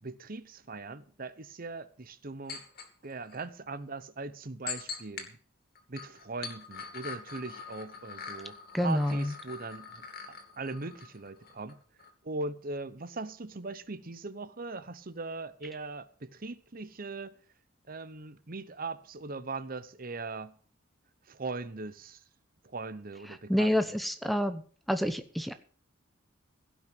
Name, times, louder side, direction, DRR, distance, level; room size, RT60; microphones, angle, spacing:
voice 1, 0.0-2.6 3.0-5.4 5.9-11.8 12.2-17.3 17.9-20.5 21.3-22.2 22.6-23.7, right 3 dB, 45° right, 0.9 m, -40 dB
sound 1, 2.5-2.9 3.3-3.4 4.7-5.3 5.8-11.7 12.0-12.1, left 6 dB, 50° left, 2.5 m, -43 dB
voice 2, 8.7-9.3 23.3-24.6 24.9-25.5, equal, ahead, 0.8 m, -28 dB
16.5 x 6.1 x 7.8 m
head